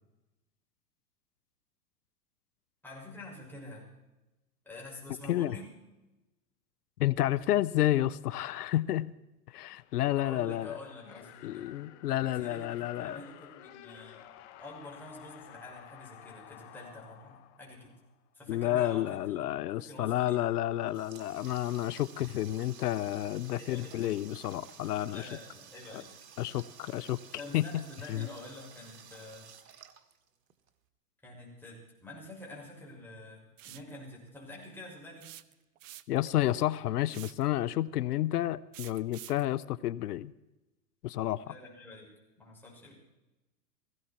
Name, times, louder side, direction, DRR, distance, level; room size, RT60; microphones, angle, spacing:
voice 1, 2.8-3.9 4.6-5.7 10.2-11.7 12.1-14.2 14.6-17.9 18.3-20.5 23.6-24.3 25.1-26.1 27.4-29.5 31.2-35.3 41.4-42.1 42.4-42.9, left 2 dB, 5° left, -4 dB, 6.2 m, -47 dB
voice 2, 7.0-9.1 9.5-10.8 11.4-13.2 18.5-25.3 26.4-27.2 27.5-27.8 28.1-28.3 36.1-40.3 41.0-41.6, left 14 dB, 70° left, 19 dB, 0.7 m, -30 dB
sound 1, 9.5-18.3, left 12 dB, 45° left, 1.3 m, -53 dB
Water tap faucet, 20.5-30.7, right 7 dB, 80° right, 1.7 m, -53 dB
sound 2, 33.6-33.9 35.2-36.3 37.1-37.5 38.7-39.5, right 14 dB, 55° right, 0.9 m, -48 dB
17.5 x 16.5 x 4.5 m, 1.0 s
hypercardioid pair, 120°, 48 cm